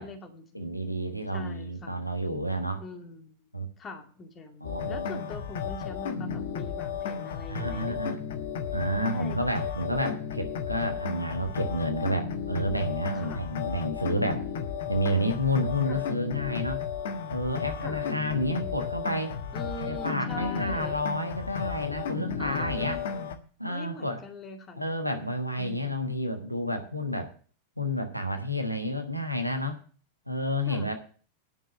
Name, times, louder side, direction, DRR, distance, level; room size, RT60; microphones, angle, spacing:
voice 1, 0.0-0.7 1.3-2.1 2.8-3.5 3.8-8.2 9.1-9.4 13.1-13.4 15.9-16.1 17.8-18.0 19.5-21.0 22.4-23.3 23.7-25.0 25.6-26.0 30.7-30.9, left 3 dB, 25° left, 5 dB, 2.3 m, -42 dB
voice 2, 0.5-2.8 3.5-3.7 4.6-5.1 7.5-8.2 8.7-14.5 14.9-16.8 17.3-19.3 19.8-23.0 23.6-24.2 24.8-27.3 27.8-29.8 30.3-30.9, equal, 90° left, 5 dB, 1.3 m, -30 dB
sound 1, 4.6-23.4, left 7 dB, 60° left, 1.4 m, -34 dB
11.0 x 6.3 x 8.1 m, 0.42 s
figure-of-eight pair, 90°, 0 cm